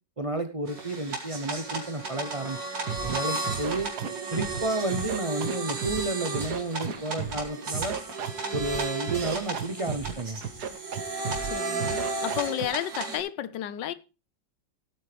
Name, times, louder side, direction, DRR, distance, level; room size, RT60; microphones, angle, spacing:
voice 1, 0.2-2.6 3.0-3.9 4.3-8.0 8.5-10.4, right 2 dB, 45° right, 0.4 m, -31 dB
sound 1, 0.7-13.2, right 3 dB, 80° right, 3.5 m, -34 dB
Scratching (performance technique), 2.8-3.2 3.4-4.6 4.9-6.0 6.3-7.4 7.7-8.8 9.1-10.1 10.4-11.0 11.2-11.5 11.8-12.6, right 7 dB, 65° right, 1.6 m, -33 dB
voice 2, 11.3-13.9, left 11 dB, 80° left, 1.4 m, -32 dB
16.5 x 8.8 x 3.4 m
omnidirectional pair, 1.9 m